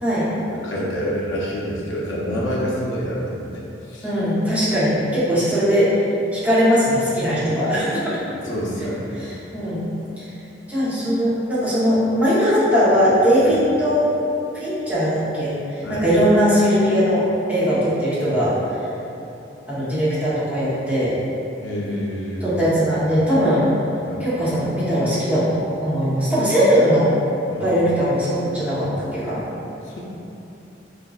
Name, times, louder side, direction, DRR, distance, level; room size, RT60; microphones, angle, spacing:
voice 1, 0.5-3.5 3.9-4.1 8.4-9.1 15.8-16.1 21.6-22.5 24.1-24.3 27.5-27.7 29.8-30.0, equal, 85° left, -5 dB, 0.6 m, -27 dB
voice 2, 4.0-6.0 6.3-8.2 9.1-9.8 10.2-10.3 10.7-14.1 14.5-18.6 19.7-21.2 22.4-23.7 24.2-27.1 27.6-29.4, equal, 10° right, -11 dB, 0.8 m, -20 dB
4.3 x 2.5 x 2.3 m, 2.9 s
head